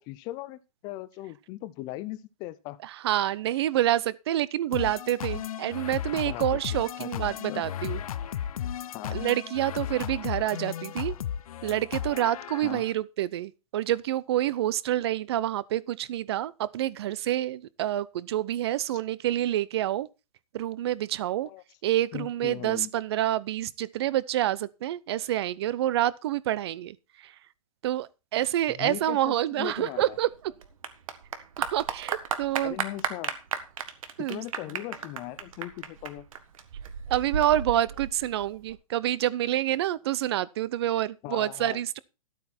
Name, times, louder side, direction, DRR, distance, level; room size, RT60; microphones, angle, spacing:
voice 1, 0.0-2.8 6.2-6.4 7.0-7.6 8.9-9.2 12.6-12.8 21.4-21.6 22.1-22.9 28.8-30.2 32.6-33.4 34.2-36.3 41.2-41.8, left 16 dB, 20° left, 0.5 m, -38 dB
voice 2, 3.0-8.0 9.0-11.1 11.6-20.1 20.5-21.5 21.8-27.0 27.2-27.3 27.8-30.3 31.7-32.8 34.2-34.4 37.1-42.0, right 13 dB, 45° right, 0.6 m, -27 dB
sound 1, 4.7-12.9, left 10 dB, 75° left, 0.6 m, -35 dB
Clapping / Applause, 29.7-38.7, right 7 dB, 65° right, 1.7 m, -35 dB
12.5 x 8.4 x 4.3 m
hypercardioid pair, 165°, 19 cm